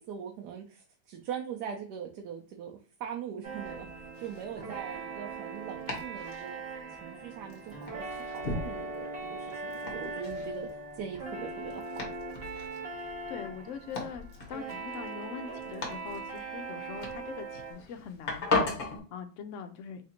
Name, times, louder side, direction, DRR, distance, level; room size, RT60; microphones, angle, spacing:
voice 1, 0.0-6.6 6.9-8.1 8.3-12.1, right 8 dB, 90° right, 2 dB, 1.2 m, -41 dB
Domestic sounds home sounds, 3.4-19.0, left 3 dB, 40° left, 1.1 m, -39 dB
sound 1, 3.4-17.7, right 3 dB, 40° right, 1.4 m, -40 dB
voice 2, 12.9-20.1, left 7 dB, 65° left, 7 dB, 0.8 m, -43 dB
3.3 x 2.6 x 4.2 m, 0.39 s
omnidirectional pair, 1.7 m